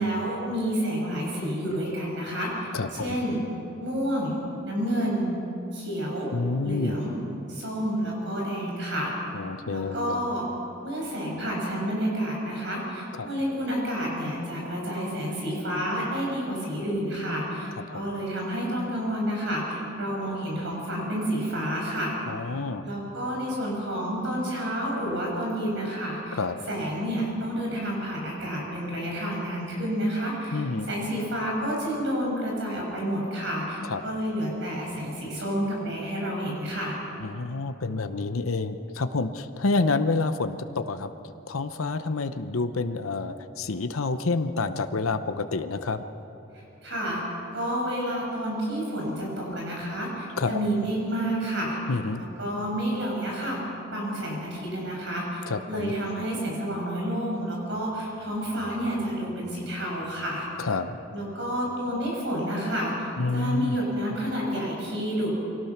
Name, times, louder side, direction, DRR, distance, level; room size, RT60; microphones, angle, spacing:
voice 1, 0.0-3.4 3.8-4.4 4.6-5.3 5.7-6.3 6.6-7.1 7.5-9.1 9.7-10.5 10.8-22.1 22.8-26.4 26.7-36.9 46.5-47.2 47.5-51.8 52.2-53.6 53.9-60.4 61.1-62.9 63.3-65.3, equal, 55° right, -2 dB, 6.4 m, -29 dB
voice 2, 2.7-3.2 6.3-7.0 9.3-10.2 13.2-13.3 17.9-18.1 22.3-22.9 26.4-26.5 30.5-30.9 33.9-34.0 37.2-41.1 41.5-46.0 49.5-49.6 50.4-50.6 51.9-52.2 55.5-55.9 60.6-61.0 63.2-63.8, left 3 dB, 85° left, 9 dB, 0.8 m, -28 dB
24.5 x 18.5 x 5.9 m, 3.0 s
head